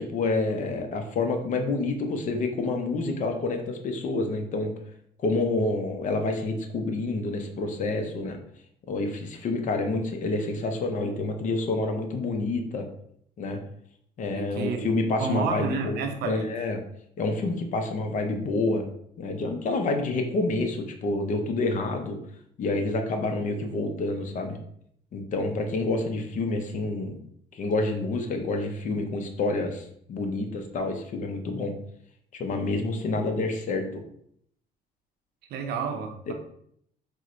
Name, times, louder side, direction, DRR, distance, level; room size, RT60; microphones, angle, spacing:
voice 1, 0.0-4.7 5.2-8.4 8.9-12.9 13.4-13.6 14.2-16.8 17.2-18.9 19.2-22.2 22.6-24.6 25.1-27.2 27.5-31.7 32.4-33.8 36.3-36.4, left 2 dB, 50° left, 5 dB, 0.6 m, -28 dB
voice 2, 14.3-16.5 35.5-36.3, right 5 dB, 75° right, 5 dB, 0.6 m, -31 dB
4.4 x 2.1 x 2.5 m, 0.69 s
cardioid pair, 110°, 17 cm